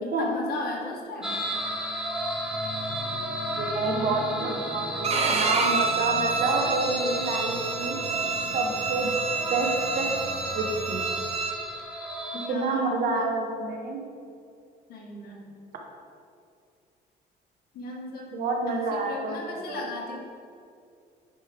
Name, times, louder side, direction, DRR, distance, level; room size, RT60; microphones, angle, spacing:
voice 1, 0.0-1.4 12.3-13.3 14.9-15.5 17.7-18.3 18.7-20.1, left 2 dB, 65° left, -2 dB, 1.8 m, -36 dB
sound 1, 1.2-12.5, equal, 5° right, 0.9 m, -33 dB
sound 2, 1.3-11.3, left 1 dB, 35° left, 1.5 m, -41 dB
voice 2, 3.6-8.0 8.5-9.1 9.5-9.7 9.9-10.1 10.5-11.1 12.5-14.0 18.3-19.4 19.7-19.8, right 3 dB, 55° right, 1 dB, 1.3 m, -28 dB
Bowed string instrument, 5.0-11.5, right 4 dB, 40° right, 0.9 m, -29 dB
10.0 x 5.4 x 3.6 m, 2.4 s
cardioid pair, 110°, 17 cm